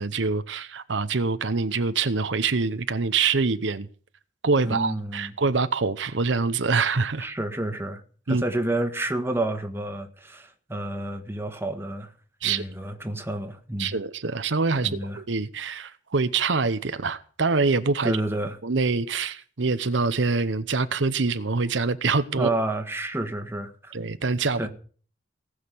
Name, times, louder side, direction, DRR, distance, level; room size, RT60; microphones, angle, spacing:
voice 1, 0.0-3.9 4.4-7.3 8.3-8.4 12.4-12.6 13.8-18.2 18.6-22.5 23.9-24.7, right 4 dB, 75° right, 0.9 m, -25 dB
voice 2, 4.6-5.3 7.2-8.0 8.3-12.1 12.4-14.0 14.8-15.2 18.0-18.6 22.4-23.9 24.6-24.7, right 1 dB, 15° right, 1.6 m, -29 dB
18.5 x 6.6 x 9.6 m
head